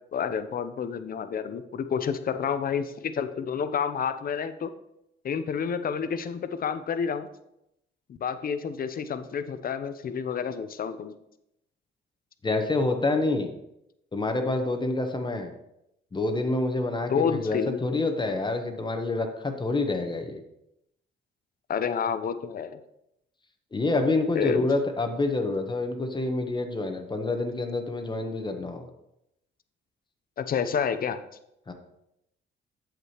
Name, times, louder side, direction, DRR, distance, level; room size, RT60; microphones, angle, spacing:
voice 1, 0.1-4.7 5.2-7.3 8.2-11.1 17.1-18.0 21.7-22.8 24.3-24.7 30.4-31.2, left 7 dB, 45° left, 10 dB, 0.6 m, -29 dB
voice 2, 12.4-13.5 14.1-15.5 16.1-20.4 23.7-28.9 31.7-31.8, left 2 dB, 25° left, 6 dB, 1.0 m, -27 dB
8.1 x 7.5 x 3.0 m, 0.83 s
cardioid pair, 90°, 20 cm